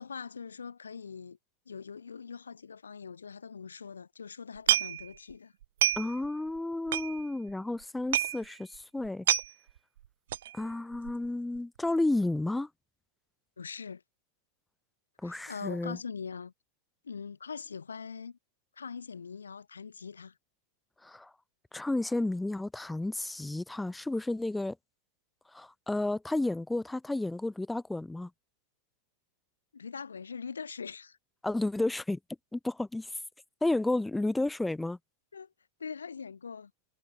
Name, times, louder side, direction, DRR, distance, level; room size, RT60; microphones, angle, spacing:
voice 1, 0.0-1.4 1.7-5.5 13.6-14.0 15.2-16.5 17.0-18.4 18.8-20.3 29.7-31.2 35.3-35.5 35.8-36.7, left 6 dB, 75° left, 4.5 m, -42 dB
sound 1, 4.6-5.3 5.6-6.3 6.6-6.7 6.9-7.5 7.8-7.9 8.1-8.4 8.8-8.9 9.0-9.5 10.3-10.6 10.9-11.3 11.6-11.7, right 12 dB, 60° right, 0.5 m, -28 dB
voice 2, 6.0-9.3 10.5-12.7 15.2-16.0 21.0-21.3 21.7-24.8 25.5-28.3 31.4-32.2 32.5-33.1 33.6-35.0, left 2 dB, 5° left, 2.0 m, -32 dB
figure-of-eight pair, 90°, 0 cm